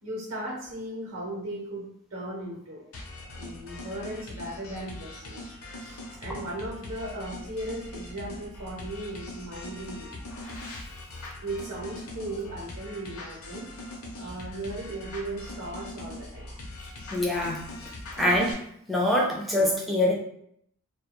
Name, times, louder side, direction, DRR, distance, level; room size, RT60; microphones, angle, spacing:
voice 1, 0.0-2.8 3.4-10.2 11.4-13.7 14.2-16.5, right 1 dB, 55° right, -4 dB, 0.7 m, -37 dB
sound 1, 2.9-18.5, left 1 dB, 75° left, 0.6 m, -41 dB
voice 2, 17.1-17.6 18.2-18.6 18.9-20.1, left 1 dB, ahead, -3 dB, 0.4 m, -24 dB
2.2 x 2.2 x 2.9 m, 0.71 s
head